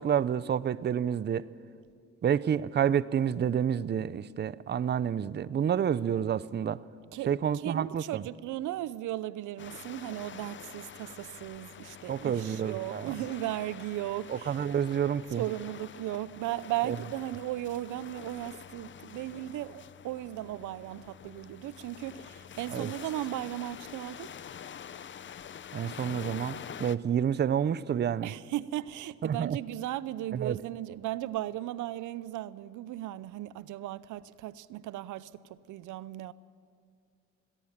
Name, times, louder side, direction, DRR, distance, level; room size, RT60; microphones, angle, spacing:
voice 1, 0.0-1.5 2.2-6.8 7.3-8.0 12.1-13.1 14.3-15.4 22.7-22.9 25.7-28.3 29.2-29.6 30.3-30.6, right 8 dB, 35° right, 0.6 m, -29 dB
voice 2, 7.1-14.6 15.3-24.3 28.2-36.3, right 14 dB, 80° right, 0.6 m, -36 dB
sound 1, 9.6-27.0, left 8 dB, 40° left, 0.7 m, -46 dB
21.5 x 18.0 x 7.3 m
cardioid pair, 90°, 30 cm